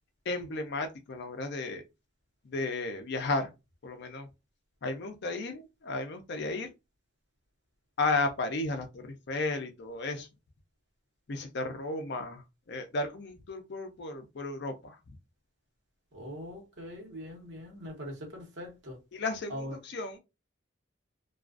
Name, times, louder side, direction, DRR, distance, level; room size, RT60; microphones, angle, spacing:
voice 1, 0.3-1.8 2.4-3.5 3.8-4.3 4.8-6.7 8.0-10.3 11.3-15.0 19.1-20.2, left 3 dB, 55° left, 0.5 m, -34 dB
voice 2, 16.1-19.0 19.5-19.7, equal, 60° right, 1.0 m, -42 dB
2.3 x 2.3 x 2.3 m
head